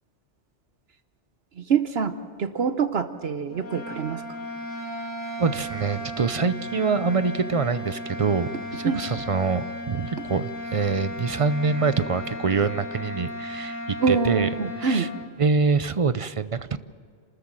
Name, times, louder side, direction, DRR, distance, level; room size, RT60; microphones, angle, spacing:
voice 1, 1.6-2.1 2.4-4.2 8.8-9.0 14.0-15.1, right 5 dB, 65° right, 10 dB, 1.1 m, -25 dB
sound 1, 3.5-15.3, left 1 dB, 85° left, 2.6 m, -35 dB
voice 2, 5.4-14.5 14.8-15.1 15.4-16.8, right 4 dB, 40° right, 14 dB, 0.5 m, -25 dB
29.0 x 13.5 x 7.4 m, 2.2 s
omnidirectional pair, 1.2 m